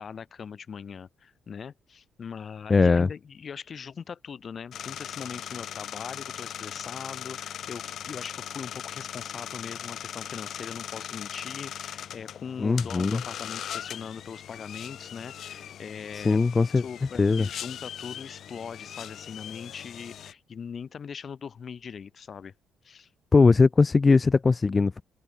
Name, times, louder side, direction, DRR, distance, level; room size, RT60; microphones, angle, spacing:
voice 1, 0.0-16.4 16.7-22.5 22.8-23.1, left 6 dB, 45° left, 5.9 m, -40 dB
voice 2, 2.7-3.1 12.6-13.2 16.1-16.8 17.2-17.5 23.3-25.0, left 4 dB, 30° left, 0.4 m, -20 dB
sound 1, 4.7-20.3, left 10 dB, 65° left, 0.8 m, -39 dB
cardioid pair, 90°, 0 cm